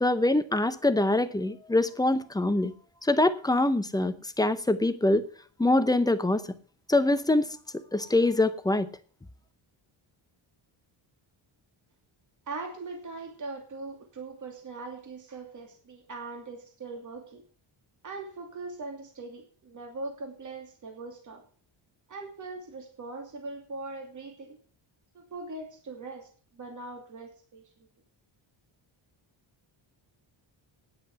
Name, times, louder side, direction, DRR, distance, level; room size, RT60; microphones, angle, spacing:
voice 1, 0.0-2.7 3.0-5.2 5.6-6.4 6.9-8.9, left 2 dB, 10° left, 11 dB, 0.6 m, -24 dB
voice 2, 12.5-17.4 18.0-21.4 22.1-24.6 25.1-26.3 26.5-27.6, right 3 dB, 35° right, 3 dB, 2.6 m, -40 dB
9.7 x 8.2 x 7.8 m, 0.44 s
wide cardioid pair, 165°, 49 cm